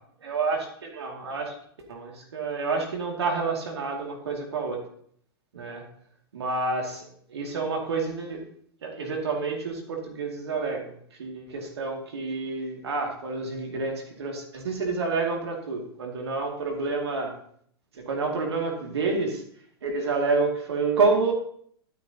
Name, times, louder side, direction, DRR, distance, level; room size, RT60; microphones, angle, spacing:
voice 1, 0.2-1.5 1.9-4.8 5.5-5.9 6.3-8.4 8.8-17.3 18.1-19.4 19.8-21.3, right 4 dB, 80° right, 1 dB, 2.3 m, -29 dB
11.5 x 9.4 x 2.9 m, 0.64 s
hypercardioid pair, 105°, 13 cm